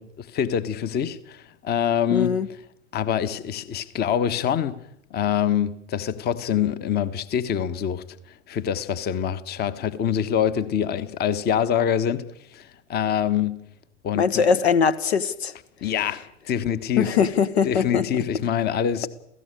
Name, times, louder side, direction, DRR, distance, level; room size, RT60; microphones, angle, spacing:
voice 1, 0.0-2.3 2.9-4.8 5.1-8.0 8.5-12.3 12.5-13.5 14.0-14.4 15.8-17.1 17.6-19.1, left 9 dB, 30° left, 1.3 m, -25 dB
voice 2, 2.1-2.5 14.1-15.5 17.0-18.2, left 6 dB, 65° left, 1.3 m, -21 dB
29.5 x 16.0 x 6.8 m
figure-of-eight pair, 90°, 35 cm